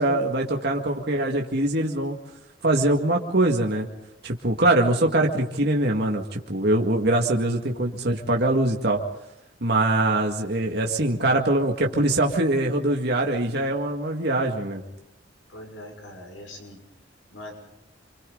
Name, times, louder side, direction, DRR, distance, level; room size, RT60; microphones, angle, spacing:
voice 1, 0.0-2.2 2.6-3.9 4.2-9.0 9.6-14.8, right 1 dB, 60° right, 1 dB, 2.1 m, -23 dB
voice 2, 15.5-16.8 17.3-17.5, left 1 dB, 85° left, 3 dB, 6.0 m, -41 dB
29.5 x 25.0 x 4.0 m, 0.87 s
head